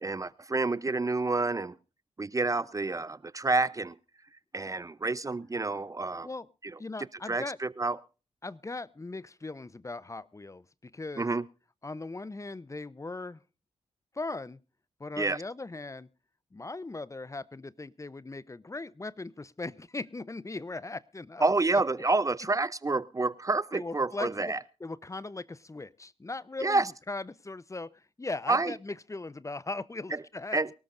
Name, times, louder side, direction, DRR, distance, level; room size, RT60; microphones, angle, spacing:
voice 1, 0.0-1.8 2.2-3.9 4.5-6.3 6.6-6.8 7.3-8.0 11.2-11.4 15.2-15.4 21.4-24.6 26.6-26.9 28.5-28.7 30.1-30.2 30.5-30.7, right 3 dB, 25° right, 21 dB, 0.6 m, -28 dB
voice 2, 6.8-7.6 8.4-11.3 11.8-13.4 14.1-14.6 15.0-16.1 16.5-21.4 23.7-24.5 24.8-30.6, left 3 dB, 25° left, 20 dB, 0.7 m, -39 dB
23.5 x 13.0 x 2.5 m, 0.33 s
supercardioid pair, 50°, 12 cm